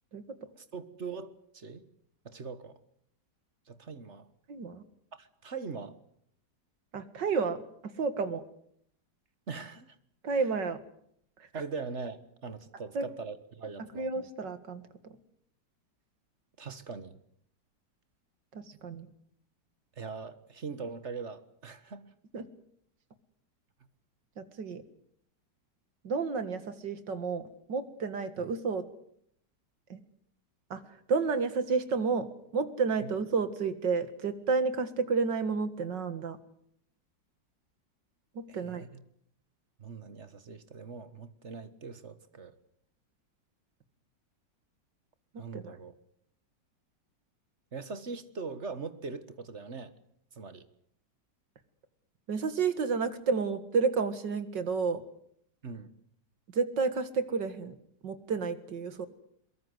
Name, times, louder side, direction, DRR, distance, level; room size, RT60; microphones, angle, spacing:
voice 1, 0.6-1.8 2.3-2.8 3.7-4.3 5.1-6.0 9.5-10.0 11.5-14.1 16.6-17.2 20.0-22.1 38.5-39.0 39.8-42.5 45.4-45.9 47.7-50.0 50.3-50.7 55.6-55.9, right 4 dB, 40° right, 12 dB, 1.7 m, -41 dB
voice 2, 4.5-4.8 6.9-8.4 10.2-10.8 12.9-13.1 14.0-15.2 18.5-19.1 22.3-22.5 24.4-24.8 26.0-28.8 29.9-30.0 30.7-30.8 31.1-32.3 32.5-36.4 38.4-38.8 45.3-45.7 52.3-55.0 56.5-57.8 58.0-59.1, right 5 dB, 80° right, 11 dB, 2.5 m, -31 dB
23.0 x 22.5 x 8.0 m, 0.69 s
omnidirectional pair, 1.9 m